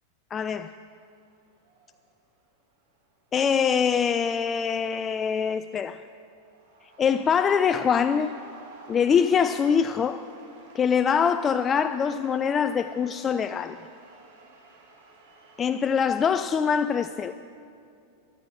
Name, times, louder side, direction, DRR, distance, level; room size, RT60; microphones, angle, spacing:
voice 1, 0.3-0.7 3.3-6.0 7.0-8.3 8.9-10.2 10.7-13.8 15.6-17.3, left 7 dB, 20° left, 0.3 m, -24 dB
sound 1, 0.8-1.2 1.5-2.0 2.9-3.2 3.6-5.8 6.1-16.0, right 3 dB, 55° right, 2.3 m, -51 dB
14.0 x 12.5 x 6.2 m
figure-of-eight pair, 90°, 0 cm